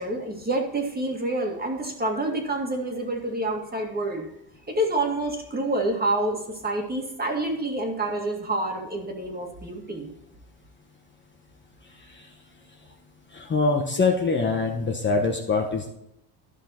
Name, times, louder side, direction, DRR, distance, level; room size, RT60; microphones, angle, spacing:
voice 1, 0.0-4.3 4.7-10.1, right 2 dB, 20° right, 2 dB, 2.0 m, -28 dB
voice 2, 13.3-15.9, left 4 dB, 25° left, 1 dB, 1.1 m, -24 dB
13.0 x 6.0 x 4.4 m, 0.80 s
cardioid pair, 130°, 48 cm